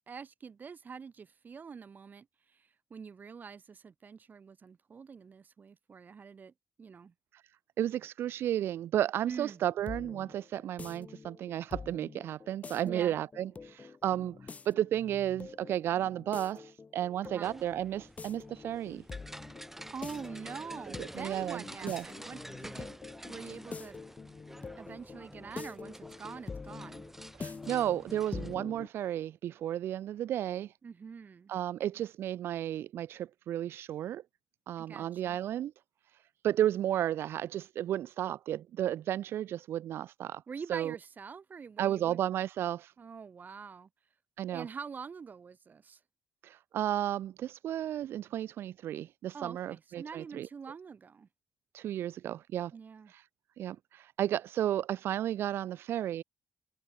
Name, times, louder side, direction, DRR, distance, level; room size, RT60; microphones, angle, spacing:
voice 1, 0.1-6.5 6.8-7.1 9.3-9.6 12.8-13.2 17.2-17.6 19.9-23.0 23.2-24.0 24.8-27.0 30.8-31.5 34.8-35.4 40.5-42.2 43.0-43.9 44.5-46.0 49.3-51.3 52.7-53.1, right 6 dB, 45° right, 2.3 m, -45 dB
voice 2, 7.8-19.0 21.0-22.0 27.4-30.7 31.5-34.2 34.7-35.7 36.4-40.4 40.7-41.0 41.8-42.9 44.4-44.7 46.4-50.5 51.7-52.7 53.1-53.2 53.6-56.2, right 11 dB, 75° right, 0.3 m, -33 dB
sound 1, 9.4-28.9, left 4 dB, 35° left, 1.1 m, -46 dB
sound 2, 17.4-28.6, right 1 dB, 10° right, 6.7 m, -49 dB
cardioid pair, 75°, 4 cm